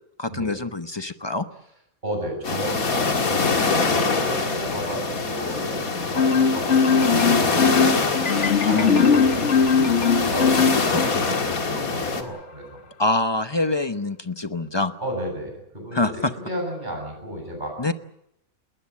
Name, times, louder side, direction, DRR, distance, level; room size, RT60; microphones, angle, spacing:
voice 1, 0.2-1.5 8.7-9.0 10.9-11.0 13.0-14.9 15.9-16.3 17.8-17.9, left 2 dB, 25° left, 10 dB, 0.7 m, -25 dB
voice 2, 2.0-12.8 15.0-17.8, equal, 30° right, 2 dB, 8.1 m, -33 dB
sound 1, 2.4-12.2, left 4 dB, 75° left, 2.5 m, -24 dB
Marimba xylophone, 6.2-11.3, left 5 dB, 55° left, 1.5 m, -20 dB
21.5 x 19.0 x 8.6 m, 0.79 s
omnidirectional pair, 1.5 m